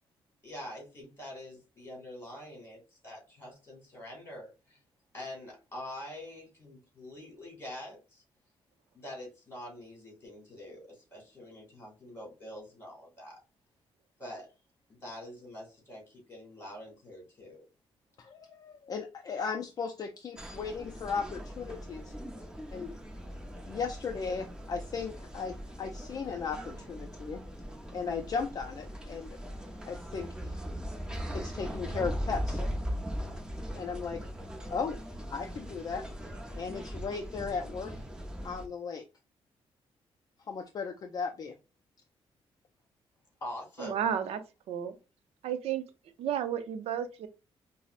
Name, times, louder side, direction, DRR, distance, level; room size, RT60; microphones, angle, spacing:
voice 1, 0.4-4.8 5.1-8.2 8.9-13.4 14.2-14.5 14.9-17.7 43.4-44.0, left 1 dB, 25° left, 2.1 m, -45 dB
voice 2, 18.2-22.1 22.7-22.9 23.7-27.4 27.9-29.4 29.9-30.5 31.3-32.6 33.7-34.2 34.7-35.0 35.3-36.0 36.5-37.9 38.4-39.0 40.5-41.6, left 5 dB, 40° left, 0.4 m, -36 dB
sound 1, 20.4-38.7, equal, 10° right, 0.6 m, -40 dB
voice 3, 43.8-44.4 44.7-45.0 45.4-45.8 46.2-47.3, right 9 dB, 85° right, 0.5 m, -32 dB
5.4 x 2.0 x 2.4 m
cardioid pair, 145°, 10 cm